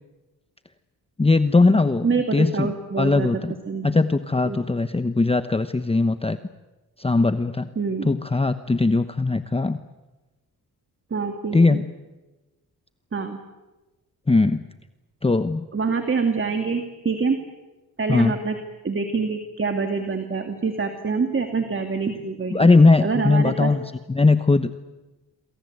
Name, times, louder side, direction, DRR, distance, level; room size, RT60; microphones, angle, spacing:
voice 1, 1.2-2.7 3.0-3.5 3.8-6.4 7.0-7.7 8.0-9.8 11.5-11.8 14.3-14.6 15.2-15.7 18.1-18.4 22.5-23.8 24.1-24.7, left 3 dB, 15° left, 10 dB, 1.0 m, -19 dB
voice 2, 2.0-3.4 3.7-4.0 4.5-4.6 7.8-8.1 11.1-11.8 13.1-13.4 15.7-17.4 18.0-18.6 18.8-22.7 23.0-23.7, right 4 dB, 35° right, 6 dB, 2.4 m, -25 dB
27.5 x 23.0 x 8.0 m, 1.1 s
cardioid pair, 90°, 37 cm